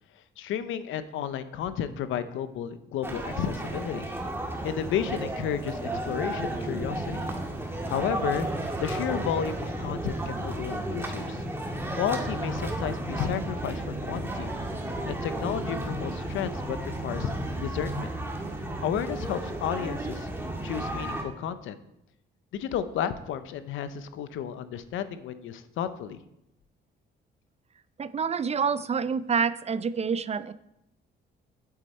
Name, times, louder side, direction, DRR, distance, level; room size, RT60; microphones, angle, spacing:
voice 1, 0.4-4.1 4.6-7.3 7.9-8.5 8.8-11.4 11.9-14.5 15.1-17.3 17.6-18.1 18.8-20.3 20.6-21.8 22.5-26.2, left 9 dB, 85° left, 12 dB, 0.8 m, -32 dB
sound 1, 3.0-21.2, right 1 dB, 10° right, 1.8 m, -33 dB
voice 2, 28.0-30.5, right 6 dB, 35° right, 15 dB, 0.4 m, -27 dB
8.6 x 8.3 x 4.3 m, 0.85 s
cardioid pair, 90°, 20 cm